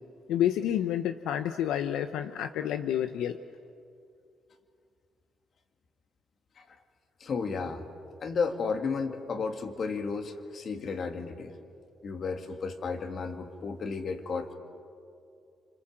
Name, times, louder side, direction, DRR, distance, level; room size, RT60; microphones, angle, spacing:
voice 1, 0.3-3.4, left 10 dB, 90° left, 9 dB, 0.8 m, -29 dB
voice 2, 7.2-7.8 8.2-11.5 12.0-14.5, left 5 dB, 50° left, 6 dB, 2.4 m, -33 dB
29.5 x 26.5 x 7.7 m, 2.5 s
cardioid pair, 90°, 0 cm